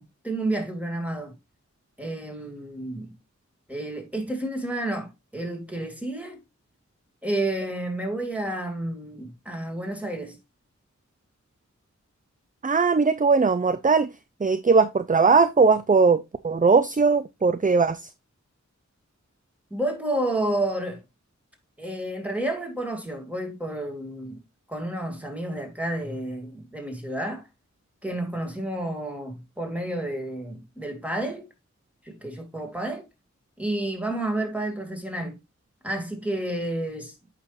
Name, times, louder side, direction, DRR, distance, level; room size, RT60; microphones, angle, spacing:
voice 1, 0.0-1.3 2.0-3.1 3.7-6.4 7.2-10.4 19.7-21.0 21.8-24.4 24.7-27.4 28.0-31.5 32.0-33.1 33.6-35.4 35.8-37.3, right 1 dB, 5° right, 2.7 m, -30 dB
voice 2, 12.6-14.1 14.4-18.1, right 4 dB, 30° right, 0.5 m, -20 dB
8.7 x 5.9 x 2.6 m
wide cardioid pair, 50°, 30 cm